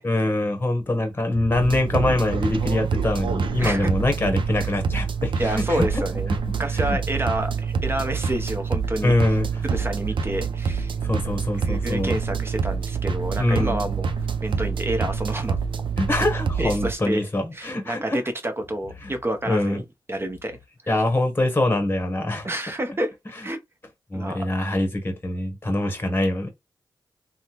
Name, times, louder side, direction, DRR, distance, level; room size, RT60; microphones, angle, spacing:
voice 1, 0.0-5.9 6.7-7.0 9.0-9.6 11.0-12.2 13.4-13.8 16.0-18.2 19.0-19.1 19.5-19.8 20.9-22.5 24.1-26.5, left 1 dB, 25° left, 1.0 m, -24 dB
sound 1, 1.5-16.9, right 5 dB, 70° right, 0.5 m, -26 dB
voice 2, 3.6-3.9 4.6-4.7 5.4-9.1 9.6-10.9 11.6-14.1 14.4-15.6 16.6-17.3 17.5-20.6 20.8-21.0 22.4-23.1 23.4-23.6 24.1-24.5, right 1 dB, 25° right, 0.8 m, -29 dB
3.4 x 2.1 x 2.9 m
cardioid pair, 65°, 9 cm